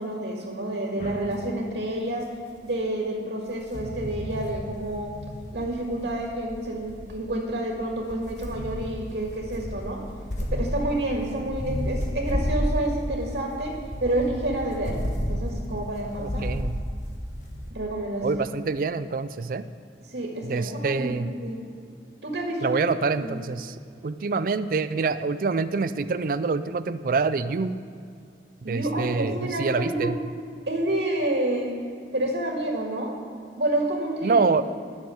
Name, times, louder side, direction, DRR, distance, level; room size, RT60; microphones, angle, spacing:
voice 1, 0.0-2.3 2.6-5.1 5.5-10.0 10.4-16.5 17.7-18.5 20.0-21.6 22.2-22.8 23.2-23.4 28.6-30.2 30.7-31.7 32.1-33.2 33.6-34.5, right 1 dB, 75° right, 0 dB, 1.8 m, -29 dB
sound 1, 1.0-1.3 2.6-2.7 3.5-17.7, equal, 45° left, 1.5 m, -32 dB
voice 2, 16.2-16.8 18.2-19.6 20.4-21.3 22.6-23.7 24.0-27.8 28.7-30.1 34.2-34.6, right 4 dB, 50° right, 13 dB, 0.4 m, -26 dB
11.5 x 6.5 x 7.8 m, 2.3 s
head